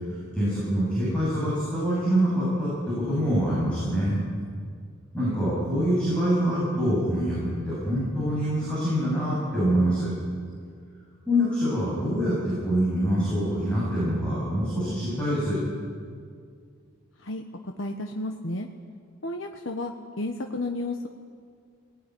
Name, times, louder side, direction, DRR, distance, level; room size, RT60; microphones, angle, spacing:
voice 1, 0.3-4.2 5.1-10.1 11.3-15.6, equal, 5° left, -9 dB, 8.0 m, -25 dB
voice 2, 17.2-18.7 19.2-21.1, left 2 dB, 65° left, 3 dB, 1.2 m, -32 dB
21.5 x 18.0 x 9.9 m, 2.2 s
head